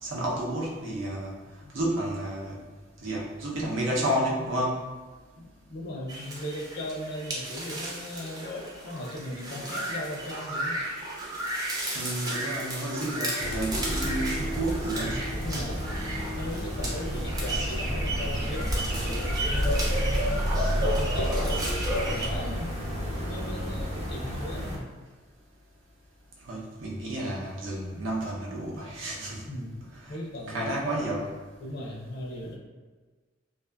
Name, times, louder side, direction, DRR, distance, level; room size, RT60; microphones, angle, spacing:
voice 1, 0.0-1.3 1.7-2.6 3.0-4.8 11.9-15.2 26.4-29.4 30.0-30.1 30.5-31.3, right 1 dB, 85° right, -4 dB, 0.7 m, -31 dB
voice 2, 5.4-10.8 15.3-15.9 16.1-19.9 20.7-22.7 23.1-24.9 29.5-29.7 30.1-30.7 31.6-32.5, left 1 dB, 60° left, -1 dB, 0.5 m, -37 dB
sound 1, 6.1-22.3, right 1 dB, 20° right, 0.5 m, -35 dB
sound 2, 13.4-24.8, equal, 35° right, 0.9 m, -29 dB
2.6 x 2.4 x 2.2 m, 1.3 s
head